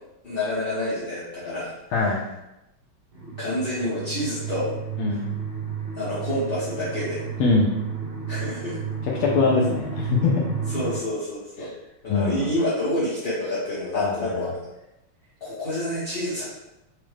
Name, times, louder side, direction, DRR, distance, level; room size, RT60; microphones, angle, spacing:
voice 1, 0.2-1.7 2.0-2.1 3.2-4.8 5.1-5.2 5.9-7.3 8.3-8.8 10.7-11.7 12.0-14.7 15.4-16.4, left 1 dB, 50° left, -11 dB, 0.6 m, -28 dB
voice 2, 1.9-2.2 5.0-5.2 7.4-7.7 9.0-10.4 11.6-11.7 12.1-12.5 13.9-14.3, left 4 dB, 80° left, -4 dB, 1.5 m, -22 dB
sound 1, 3.1-11.0, right 6 dB, 60° right, 1.4 m, -32 dB
4.9 x 2.1 x 3.2 m, 0.90 s
omnidirectional pair, 2.4 m